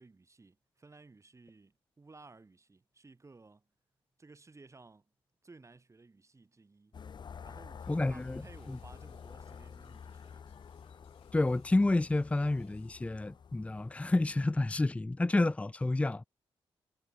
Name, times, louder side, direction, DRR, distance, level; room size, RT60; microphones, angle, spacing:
voice 1, 0.0-3.7 4.2-5.1 5.4-7.0 7.4-10.4, right 3 dB, 30° right, 4.7 m, -57 dB
sound 1, 6.9-14.8, left 6 dB, 50° left, 0.7 m, -50 dB
sound 2, 7.8-13.1, left 12 dB, 90° left, 4.4 m, -71 dB
voice 2, 7.9-8.4 8.7-8.8 11.3-16.2, left 2 dB, 15° left, 0.5 m, -29 dB
cardioid pair, 65°, 10 cm